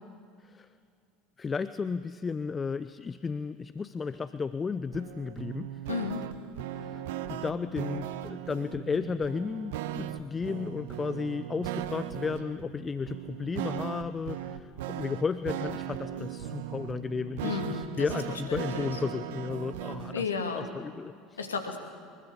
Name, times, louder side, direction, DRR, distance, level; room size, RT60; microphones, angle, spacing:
voice 1, 1.4-5.8 6.7-7.0 7.3-20.3 20.5-21.4, left 5 dB, 25° left, 14 dB, 0.6 m, -34 dB
sound 1, 4.9-20.2, right 11 dB, 65° right, 0.9 m, -38 dB
voice 2, 5.9-6.2 17.4-18.9 20.1-20.7 21.4-21.8, left 5 dB, 80° left, 4 dB, 2.5 m, -33 dB
24.0 x 21.5 x 7.1 m, 2.3 s
figure-of-eight pair, 75°, 0 cm